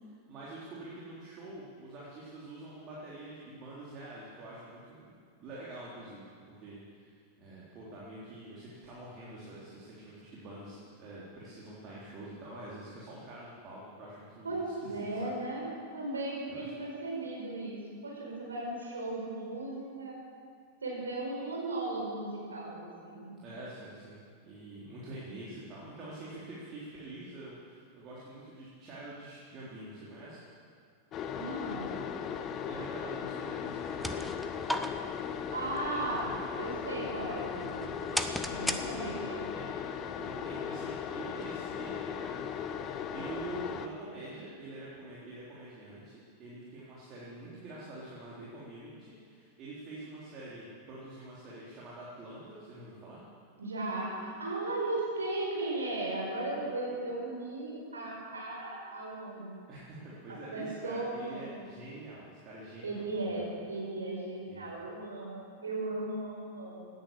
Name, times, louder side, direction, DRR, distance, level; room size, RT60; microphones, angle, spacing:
voice 1, 0.0-15.4 16.5-16.7 23.4-24.2 24.4-30.4 32.7-34.4 38.7-39.2 39.5-39.6 40.2-42.4 43.1-53.2 59.7-63.6 64.5-64.9, right 2 dB, 30° right, -7 dB, 3.8 m, -46 dB
voice 2, 14.4-15.6 15.9-20.2 20.8-23.4 31.3-31.9 35.5-38.2 38.5-39.5 53.6-59.6 60.5-61.6 62.8-66.9, right 2 dB, 75° right, -3 dB, 5.2 m, -36 dB
sound 1, 31.1-43.9, left 7 dB, 30° left, 1.0 m, -38 dB
sound 2, 33.7-39.4, left 1 dB, 5° left, 0.9 m, -39 dB
17.5 x 10.5 x 7.6 m, 2.2 s
figure-of-eight pair, 90°, 0 cm